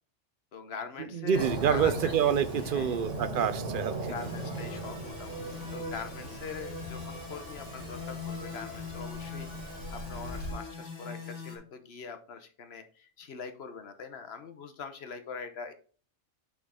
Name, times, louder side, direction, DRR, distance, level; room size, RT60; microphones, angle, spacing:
voice 1, 0.5-2.1 2.6-3.0 4.0-5.4 5.7-9.5 9.9-15.7, left 5 dB, 60° left, 9 dB, 1.1 m, -43 dB
voice 2, 1.1-4.1, right 8 dB, 55° right, 12 dB, 0.7 m, -27 dB
Fireworks, 1.3-10.5, right 2 dB, 90° right, 2.4 m, -39 dB
sound 1, 4.1-11.6, left 4 dB, 75° left, 2.0 m, -41 dB
8.7 x 3.9 x 3.6 m, 0.41 s
omnidirectional pair, 1.2 m